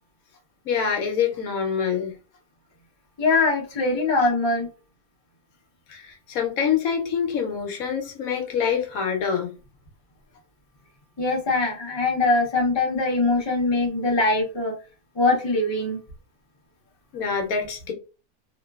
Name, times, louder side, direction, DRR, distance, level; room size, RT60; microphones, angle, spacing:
voice 1, 0.6-2.2 5.9-9.5 17.1-17.9, left 7 dB, 75° left, 1.1 m, -25 dB
voice 2, 3.2-4.7 11.2-14.8 15.2-16.0, left 2 dB, 25° left, 0.6 m, -22 dB
3.0 x 2.2 x 2.3 m
omnidirectional pair, 1.5 m